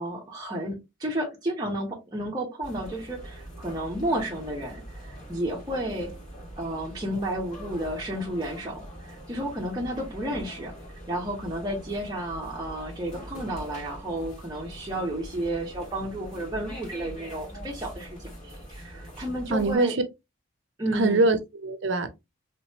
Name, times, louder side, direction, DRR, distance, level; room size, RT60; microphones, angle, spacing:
voice 1, 0.0-6.1 6.6-10.7 11.1-20.0 20.8-21.3, right 1 dB, 20° right, 0.8 m, -32 dB
sound 1, 2.6-19.8, equal, 35° left, 2.3 m, -43 dB
voice 2, 19.5-20.0 20.9-22.1, right 2 dB, 65° right, 0.5 m, -23 dB
3.2 x 3.0 x 2.8 m
head